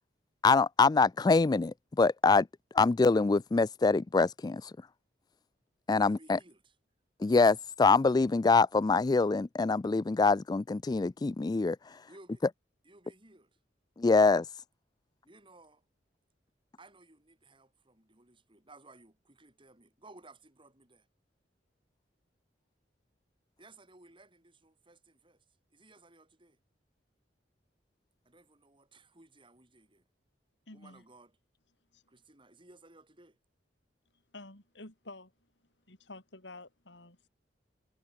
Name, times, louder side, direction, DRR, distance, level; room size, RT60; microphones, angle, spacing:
voice 1, 0.4-2.5 2.7-4.7 5.9-6.4 7.2-11.8 14.0-14.4, left 4 dB, 20° left, 0.3 m, -25 dB
voice 2, 5.9-6.8 12.1-12.4 12.8-13.6 15.2-15.9 16.8-21.1 23.6-25.4 25.7-26.6 28.3-30.0 30.7-31.4 32.1-33.4, right 2 dB, 30° right, 7.3 m, -58 dB
voice 3, 30.7-31.0 31.9-32.0 34.3-35.3 35.9-37.3, left 2 dB, 80° left, 4.6 m, -49 dB
head